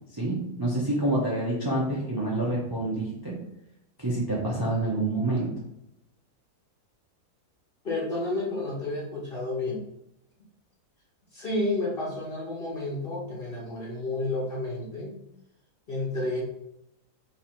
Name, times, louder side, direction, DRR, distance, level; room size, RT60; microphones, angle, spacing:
voice 1, 0.1-3.3 4.0-5.5, right 2 dB, 30° right, -4 dB, 0.4 m, -27 dB
voice 2, 7.8-9.8 11.3-15.2 15.9-16.4, left 2 dB, 45° left, -4 dB, 0.9 m, -31 dB
3.2 x 2.7 x 4.3 m, 0.83 s
omnidirectional pair, 1.7 m